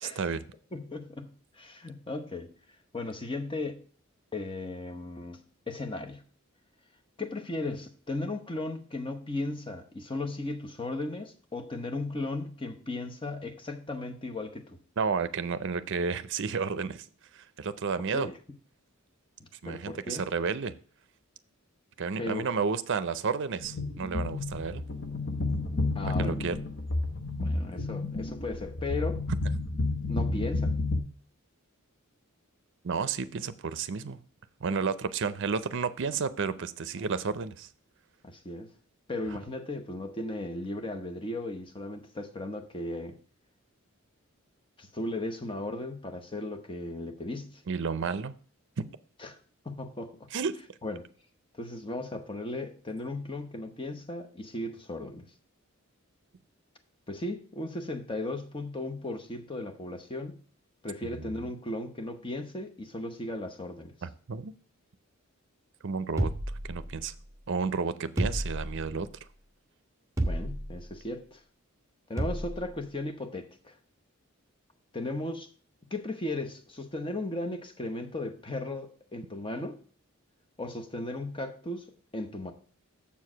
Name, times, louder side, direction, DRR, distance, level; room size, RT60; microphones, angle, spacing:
voice 1, 0.0-0.4 15.0-17.1 17.3-18.3 19.6-20.7 22.0-24.8 26.2-26.6 32.8-34.2 34.6-37.7 47.7-48.3 50.3-50.5 61.0-61.5 64.0-64.5 65.8-66.3 66.6-67.1 67.5-69.1, right 5 dB, 60° right, 0.5 m, -31 dB
voice 2, 0.7-1.3 1.6-2.5 2.9-3.8 4.3-5.4 5.7-6.2 7.2-14.8 18.1-18.3 19.4-20.2 22.2-22.5 25.9-26.4 27.4-29.2 30.1-30.7 38.2-38.7 39.1-43.2 44.8-47.6 49.2-49.4 49.6-50.3 50.8-51.0 51.5-55.2 57.1-60.4 60.8-64.0 70.2-71.4 72.1-73.7 74.9-75.5 75.9-79.8 80.6-81.9 82.1-82.5, left 2 dB, 25° left, 0.9 m, -36 dB
sound 1, 23.6-31.0, left 2 dB, 55° left, 0.9 m, -31 dB
sound 2, 66.2-67.3 68.2-69.1 70.2-70.9 72.2-72.7, right 1 dB, 15° right, 1.0 m, -31 dB
7.1 x 4.7 x 6.0 m
head